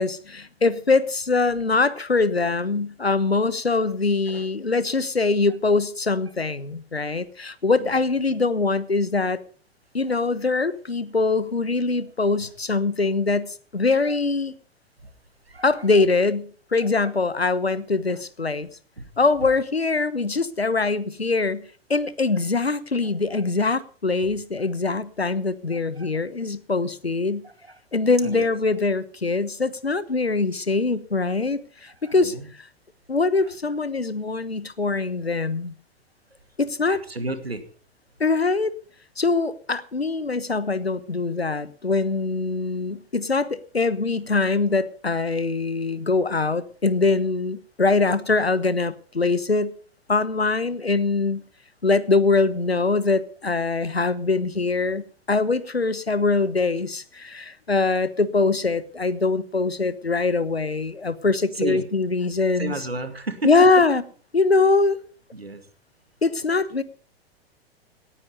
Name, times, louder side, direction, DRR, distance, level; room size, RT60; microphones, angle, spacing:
voice 1, 0.0-9.4 9.9-14.5 15.6-18.7 19.2-27.4 27.9-32.7 33.1-35.7 36.6-37.0 38.2-38.7 39.2-49.7 50.1-51.4 51.8-62.7 63.4-64.0 64.3-65.0 66.2-66.8, left 3 dB, 85° left, 1.1 m, -23 dB
voice 2, 27.4-27.8 28.2-28.5 32.0-32.5 36.9-37.6 61.5-61.8 62.6-63.7 65.3-65.6, right 2 dB, 80° right, 2.3 m, -32 dB
18.0 x 9.9 x 5.4 m
figure-of-eight pair, 100°, 30 cm